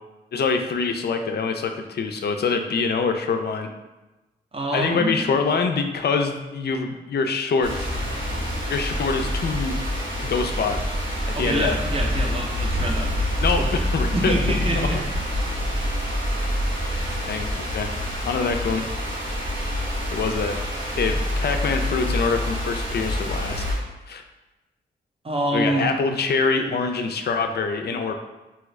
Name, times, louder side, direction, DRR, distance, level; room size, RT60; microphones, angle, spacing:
voice 1, 0.3-3.7 4.7-7.9 8.7-9.8 10.2-10.8 11.3-11.8 13.4-14.3 14.8-14.9 17.3-17.4 17.7-17.9 18.2-18.8 20.1-20.6 21.0-23.6 24.1-24.2 25.5-28.2, left 4 dB, 60° left, 6 dB, 0.4 m, -24 dB
voice 2, 4.5-5.2 11.3-13.1 13.6-13.7 14.1-15.0 25.2-25.9, right 2 dB, 30° right, 1 dB, 0.6 m, -26 dB
sound 1, 7.6-23.7, left 1 dB, 90° right, 1.0 m, -26 dB
2.7 x 2.4 x 3.1 m, 1.1 s
supercardioid pair, 45°, 19 cm